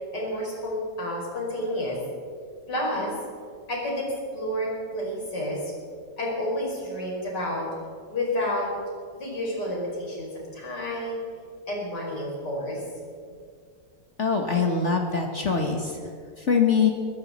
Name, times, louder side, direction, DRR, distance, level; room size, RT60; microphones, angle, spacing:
voice 1, 0.1-2.0 2.7-3.1 3.7-5.7 6.2-7.7 8.1-8.7 9.2-11.2 11.7-12.8, left 1 dB, 75° left, -3 dB, 5.6 m, -30 dB
voice 2, 14.2-16.0 16.4-16.9, left 5 dB, 45° left, 2 dB, 1.5 m, -23 dB
22.5 x 15.0 x 4.2 m, 2.1 s
omnidirectional pair, 1.8 m